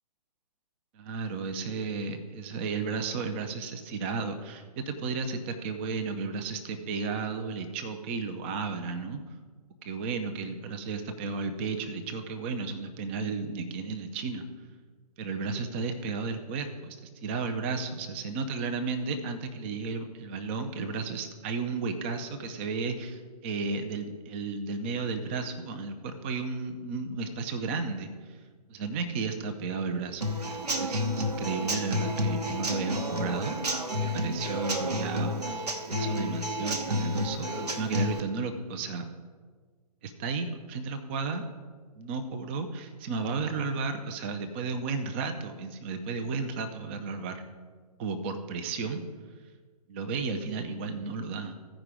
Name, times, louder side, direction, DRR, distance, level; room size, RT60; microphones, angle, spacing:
voice 1, 0.9-9.2 9.8-14.5 15.2-17.0 17.2-28.1 28.7-33.6 34.0-39.1 40.0-41.5 42.0-47.4 48.0-49.0 49.9-51.5, right 4 dB, 15° right, 7 dB, 0.4 m, -33 dB
Human voice / Acoustic guitar / Drum, 30.2-38.2, equal, 75° right, 1.0 m, -31 dB
14.5 x 5.0 x 4.8 m, 1.5 s
figure-of-eight pair, 130°, 21 cm